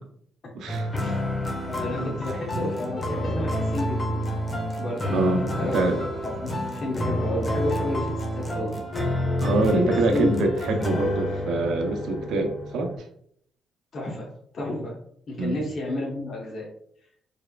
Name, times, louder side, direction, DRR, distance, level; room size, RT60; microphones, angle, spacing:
voice 1, 0.5-0.9 1.9-2.2 5.1-6.1 9.4-12.9 15.4-15.6, right 2 dB, 75° right, 3 dB, 0.6 m, -25 dB
sound 1, 0.7-13.0, equal, 25° left, 1.0 m, -29 dB
voice 2, 1.7-4.2 4.8-8.7 9.7-10.5 10.9-11.0 13.9-14.3 14.5-14.9 15.3-16.7, left 2 dB, 50° left, -2 dB, 1.0 m, -31 dB
4.7 x 3.4 x 2.2 m, 0.65 s
cardioid pair, 90°, 0 cm